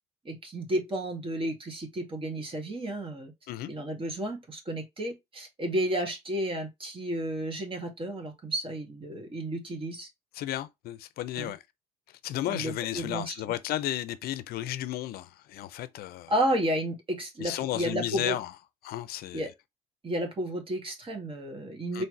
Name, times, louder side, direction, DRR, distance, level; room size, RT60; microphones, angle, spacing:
voice 1, 0.3-3.3 3.7-10.1 11.4-11.5 12.4-13.3 16.3-18.4 19.3-19.5 20.0-22.0, right 1 dB, 30° right, 2.0 m, -32 dB
voice 2, 10.3-11.6 12.2-16.3 17.4-18.5 18.8-19.5 21.9-22.0, left 13 dB, 65° left, 0.6 m, -33 dB
4.4 x 3.2 x 3.2 m
hypercardioid pair, 60°, 17 cm